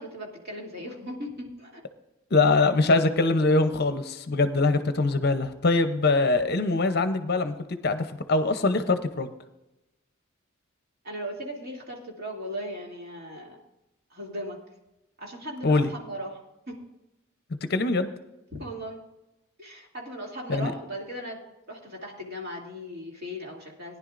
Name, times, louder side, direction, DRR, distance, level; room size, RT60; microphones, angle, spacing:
voice 1, 0.0-1.8 11.0-13.6 14.1-14.6 15.2-16.4 16.7-16.8 18.5-19.0 19.6-21.4 21.7-24.0, equal, 50° right, -2 dB, 2.7 m, -37 dB
voice 2, 2.3-9.3 15.6-15.9 17.7-18.1 20.5-20.7, left 3 dB, 50° left, 9 dB, 0.7 m, -23 dB
18.5 x 10.5 x 2.5 m, 0.94 s
head